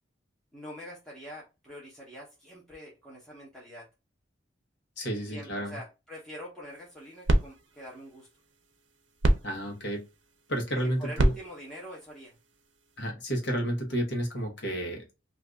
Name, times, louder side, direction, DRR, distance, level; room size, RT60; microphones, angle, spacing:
voice 1, 0.5-3.9 5.3-8.3 11.0-12.3, equal, ahead, -5 dB, 0.9 m, -45 dB
voice 2, 5.0-5.8 9.4-10.0 10.5-11.3 13.0-15.1, right 1 dB, 65° left, 2 dB, 1.2 m, -31 dB
sound 1, 6.7-13.1, right 1 dB, 75° right, 0.6 m, -31 dB
2.6 x 2.6 x 3.4 m, 0.25 s
head